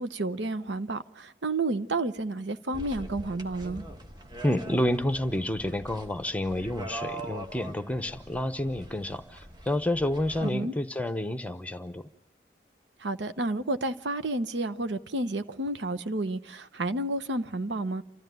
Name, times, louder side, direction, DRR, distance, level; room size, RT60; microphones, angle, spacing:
voice 1, 0.0-3.8 10.4-10.7 13.0-18.0, right 2 dB, 90° right, 0.9 m, -31 dB
sound 1, 2.7-10.5, right 1 dB, 25° right, 1.4 m, -43 dB
voice 2, 4.4-12.1, left 1 dB, 10° left, 0.7 m, -29 dB
29.5 x 13.5 x 9.3 m
head